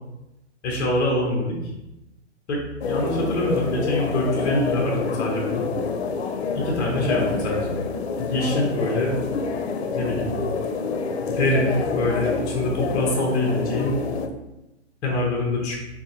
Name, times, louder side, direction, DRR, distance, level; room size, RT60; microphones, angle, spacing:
voice 1, 0.6-1.6 2.5-5.6 6.5-7.7 8.2-9.2 10.0-10.3 11.3-14.0 15.0-15.8, left 1 dB, 10° left, -2 dB, 0.4 m, -24 dB
sound 1, 2.8-14.3, left 5 dB, 65° left, 0.5 m, -27 dB
3.5 x 2.6 x 2.7 m, 0.95 s
hypercardioid pair, 130°, 35 cm